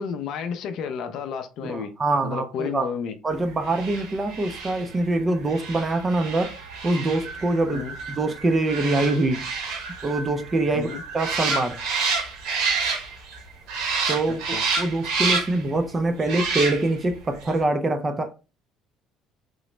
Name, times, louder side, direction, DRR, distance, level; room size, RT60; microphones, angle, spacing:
voice 1, 0.0-1.9 2.2-3.2 7.7-8.0 10.7-11.0 14.3-14.6, left 6 dB, 50° left, 0.4 m, -31 dB
voice 2, 1.6-2.9 3.2-6.6 6.8-9.5 10.0-11.8 14.1-18.3, right 2 dB, 15° right, 0.3 m, -24 dB
sound 1, 3.6-13.4 13.7-15.7 16.2-17.1 17.4-17.6, right 4 dB, 70° right, 1.0 m, -29 dB
3.7 x 2.0 x 3.1 m
cardioid pair, 170°, 0 cm